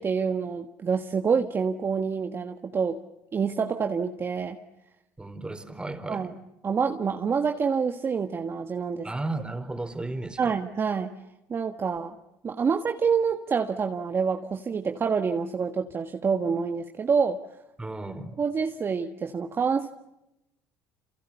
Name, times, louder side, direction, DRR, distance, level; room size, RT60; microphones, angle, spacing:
voice 1, 0.0-3.0 3.3-4.6 6.1-6.3 6.6-9.1 10.4-11.1 11.5-12.1 12.4-17.4 18.4-19.9, right 6 dB, 35° right, 5 dB, 1.6 m, -27 dB
voice 2, 5.2-6.3 9.0-10.6 17.8-18.4, right 2 dB, 10° right, 8 dB, 4.2 m, -34 dB
28.5 x 27.5 x 7.0 m, 0.90 s
supercardioid pair, 85°, 7 cm